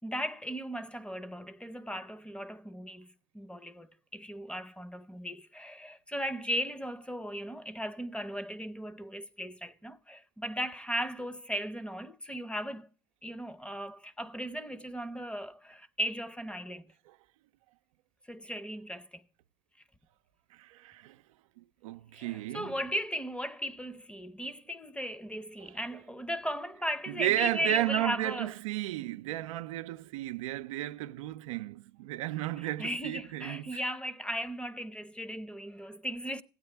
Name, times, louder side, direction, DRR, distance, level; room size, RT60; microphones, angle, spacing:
voice 1, 0.0-12.9 13.2-16.9 18.3-19.2 22.1-28.5 32.6-36.4, equal, 5° left, 0.7 m, -37 dB
voice 2, 20.5-21.2 21.6-22.8 25.6-25.7 27.1-33.8, right 15 dB, 90° right, 0.4 m, -34 dB
16.0 x 8.7 x 3.3 m
supercardioid pair, 80°, 16 cm